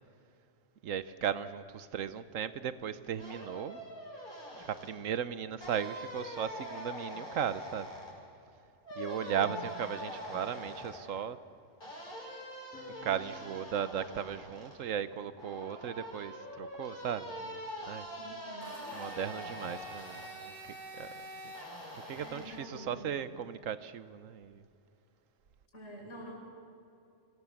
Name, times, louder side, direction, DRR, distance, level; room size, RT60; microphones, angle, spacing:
voice 1, 0.8-3.8 4.6-7.9 9.0-11.4 13.0-18.1 18.9-21.1 21.4-21.5 21.9-24.6, right 8 dB, 80° right, 1.2 m, -37 dB
sound 1, 3.2-4.9 5.6-8.1 8.8-11.0 11.8-14.7 15.4-20.3 21.5-22.4, equal, 40° left, 6.2 m, -44 dB
sound 2, 12.7-19.6 20.6-22.5, right 1 dB, 10° left, 4.5 m, -61 dB
voice 2, 18.2-18.9 22.2-23.1 25.7-26.3, right 1 dB, 55° left, 6.5 m, -47 dB
Domestic sounds home sounds, 18.6-22.6, equal, 35° right, 2.8 m, -47 dB
25.0 x 20.0 x 7.2 m
omnidirectional pair, 1.3 m